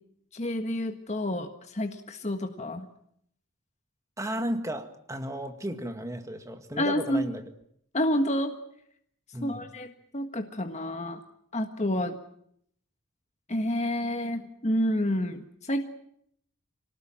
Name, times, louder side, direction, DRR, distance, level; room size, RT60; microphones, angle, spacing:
voice 1, 0.3-2.9 6.8-7.3 7.9-8.5 9.4-11.2 11.5-12.2 13.5-15.8, left 1 dB, 30° left, 5 dB, 1.6 m, -29 dB
voice 2, 4.2-7.4 9.3-9.7, equal, 15° right, 6 dB, 1.9 m, -34 dB
26.0 x 19.5 x 8.9 m, 0.71 s
head